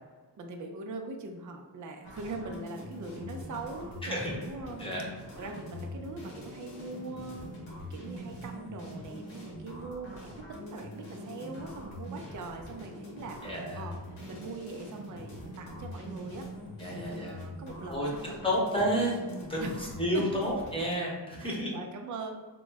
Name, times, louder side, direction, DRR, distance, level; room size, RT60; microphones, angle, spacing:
voice 1, 0.4-4.9 5.4-14.0 14.3-16.5 16.9-18.3 19.6-19.8 20.1-20.3 21.4-22.4, right 3 dB, 45° right, 3 dB, 0.5 m, -41 dB
sound 1, 2.0-20.9, equal, 80° left, 1.1 m, -43 dB
voice 2, 4.0-4.4 4.8-5.1 13.4-13.8 16.8-17.4 17.9-18.1 18.4-19.2 19.5-21.7, equal, 10° left, -4 dB, 0.9 m, -30 dB
2.9 x 2.0 x 3.4 m, 1.3 s
cardioid pair, 75°, 45 cm